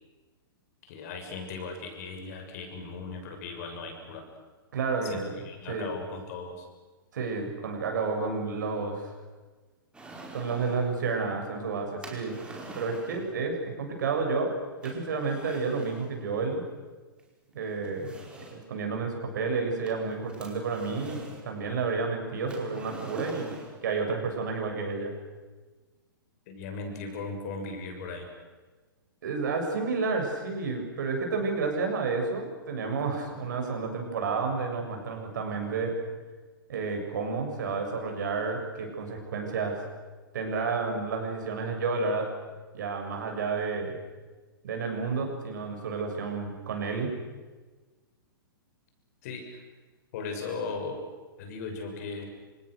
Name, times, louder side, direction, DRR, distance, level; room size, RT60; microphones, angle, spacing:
voice 1, 0.8-4.2 5.0-6.7 26.5-28.3 49.2-49.6 50.1-51.1 51.4-52.3, left 4 dB, 45° left, 5 dB, 6.6 m, -37 dB
voice 2, 4.7-5.4 5.7-5.9 7.1-9.1 10.3-12.4 12.7-14.6 14.8-16.6 17.5-18.1 18.5-21.2 21.4-23.6 23.8-25.1 29.2-35.9 36.7-39.8 40.3-42.3 42.7-44.0 44.6-47.1, right 4 dB, 55° right, 3 dB, 7.2 m, -30 dB
sound 1, 9.9-10.9 12.0-13.3 14.8-16.1 17.2-17.3 17.8-18.7 19.9-21.5 22.5-23.8, right 2 dB, 10° right, 4.9 m, -45 dB
29.5 x 27.0 x 6.6 m, 1.3 s
figure-of-eight pair, 110°, 12 cm